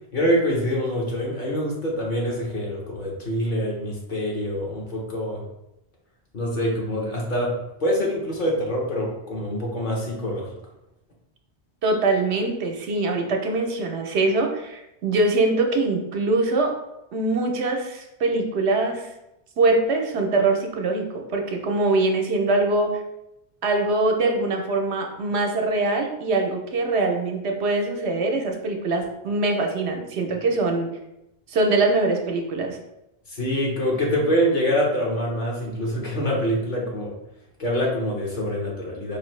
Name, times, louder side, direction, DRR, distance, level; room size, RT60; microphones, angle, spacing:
voice 1, 0.1-5.4 6.3-10.6 33.3-37.1 37.6-39.2, equal, 50° left, -2 dB, 1.0 m, -25 dB
voice 2, 11.8-16.7 17.1-19.1 19.6-23.0 23.6-31.0 31.5-32.8, right 2 dB, 75° right, 3 dB, 0.9 m, -23 dB
4.6 x 2.7 x 3.1 m, 0.89 s
omnidirectional pair, 1.1 m